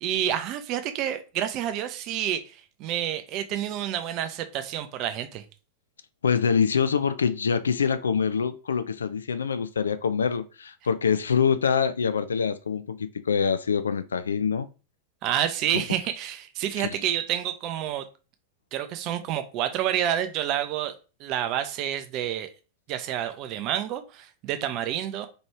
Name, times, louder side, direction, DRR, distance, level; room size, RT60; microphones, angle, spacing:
voice 1, 0.0-5.4 15.2-18.1 18.7-20.9 21.2-22.5 22.9-25.3, right 11 dB, 40° right, 0.6 m, -29 dB
voice 2, 6.2-14.7 15.7-15.8 16.8-16.9, left 6 dB, 70° left, 0.3 m, -25 dB
4.4 x 3.1 x 2.9 m
figure-of-eight pair, 90°, 0 cm